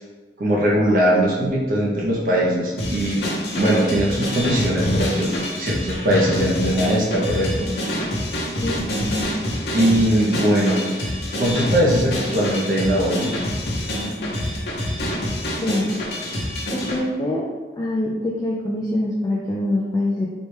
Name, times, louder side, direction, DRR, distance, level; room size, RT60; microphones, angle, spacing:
voice 1, 0.4-3.2 3.5-7.7 9.5-11.1 11.4-13.3, equal, 50° right, -4 dB, 0.5 m, -20 dB
sound 1, 2.8-17.0, left 1 dB, 70° left, 0.8 m, -26 dB
voice 2, 15.6-15.9 16.7-17.4 17.8-20.3, left 1 dB, 20° left, -4 dB, 0.3 m, -24 dB
4.1 x 2.2 x 3.2 m, 1.3 s
head